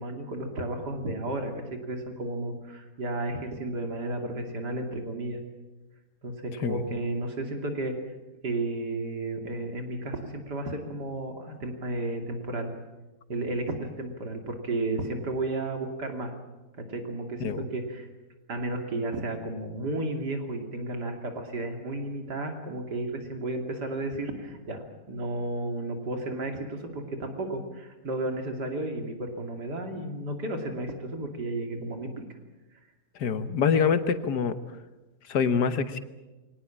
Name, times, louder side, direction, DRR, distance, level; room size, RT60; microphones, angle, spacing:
voice 1, 0.0-5.4 6.2-7.9 8.4-12.7 13.3-16.3 16.9-18.1 18.5-32.2, right 2 dB, 90° right, 4 dB, 3.3 m, -33 dB
voice 2, 33.2-34.5 35.3-36.0, left 6 dB, 80° left, 11 dB, 1.8 m, -25 dB
24.5 x 18.5 x 8.7 m, 1.1 s
omnidirectional pair, 1.7 m